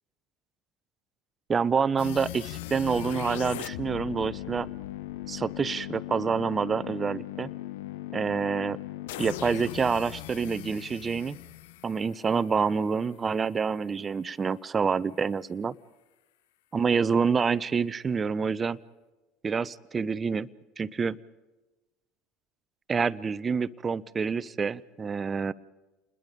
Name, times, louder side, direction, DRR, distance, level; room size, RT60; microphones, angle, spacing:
voice 1, 1.5-4.7 5.3-7.5 8.1-8.8 9.2-11.4 11.8-15.7 16.7-18.8 19.4-20.5 20.8-21.2 22.9-25.5, right 5 dB, 30° right, 17 dB, 0.8 m, -27 dB
sound 1, 2.0-12.9, left 15 dB, 75° left, 0.6 m, -38 dB
28.5 x 21.0 x 5.3 m, 1.1 s
hypercardioid pair, 75°, 0 cm